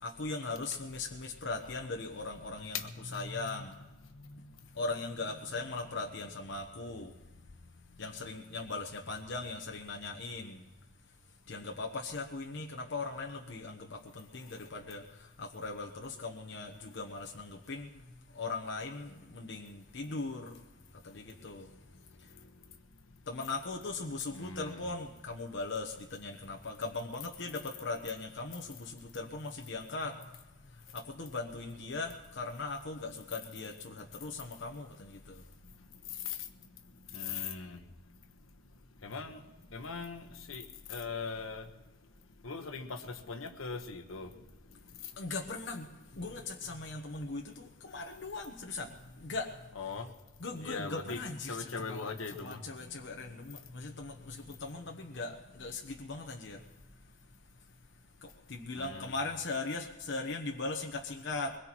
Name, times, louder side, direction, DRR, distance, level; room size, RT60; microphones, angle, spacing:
voice 1, 0.0-3.7 4.7-7.1 8.0-10.6 11.5-17.9 18.3-20.6 21.0-21.7 23.3-30.2 30.9-35.4 45.2-49.9 50.4-56.6 58.2-61.6, left 3 dB, 55° left, 2 dB, 0.9 m, -39 dB
voice 2, 3.3-3.7 4.2-4.5 24.3-24.8 36.3-36.4 37.1-37.8 39.0-39.4 39.7-41.7 42.4-44.3 49.8-50.1 50.6-51.2 51.5-52.6 58.7-59.1, left 4 dB, 75° left, 6 dB, 1.1 m, -40 dB
22.5 x 21.0 x 3.0 m, 1.1 s
head